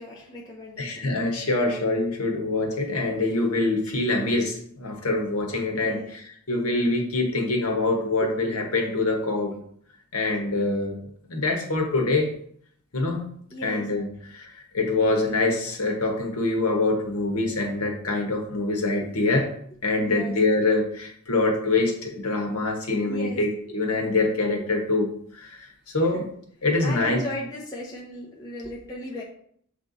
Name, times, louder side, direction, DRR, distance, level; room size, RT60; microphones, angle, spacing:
voice 1, 0.0-1.1 5.8-6.1 13.5-13.9 20.0-20.3 23.1-23.4 26.1-26.2 26.8-29.2, left 1 dB, 15° left, -6 dB, 0.9 m, -36 dB
voice 2, 0.8-9.6 10.1-11.0 11.3-12.3 12.9-13.3 13.6-19.5 19.8-25.1 25.3-25.7 25.9-26.3 26.6-27.2, left 2 dB, 75° left, 2 dB, 1.3 m, -25 dB
6.9 x 3.4 x 4.0 m, 0.64 s
head